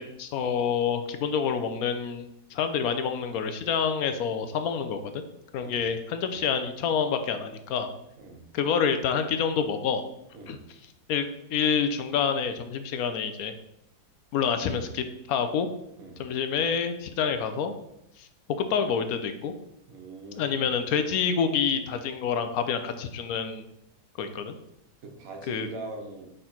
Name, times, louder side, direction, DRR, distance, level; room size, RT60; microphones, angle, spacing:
voice 1, 0.0-2.3 2.5-5.2 5.5-7.9 8.5-10.0 10.5-10.6 11.1-13.5 14.3-15.7 16.2-17.7 18.2-18.3 18.6-19.5 20.4-23.6 24.2-24.6 25.5-25.7, left 6 dB, 70° left, 8 dB, 1.0 m, -27 dB
voice 2, 19.9-20.6 25.0-26.3, right 3 dB, 60° right, 2 dB, 1.4 m, -41 dB
5.1 x 4.3 x 4.3 m, 0.80 s
omnidirectional pair, 1.8 m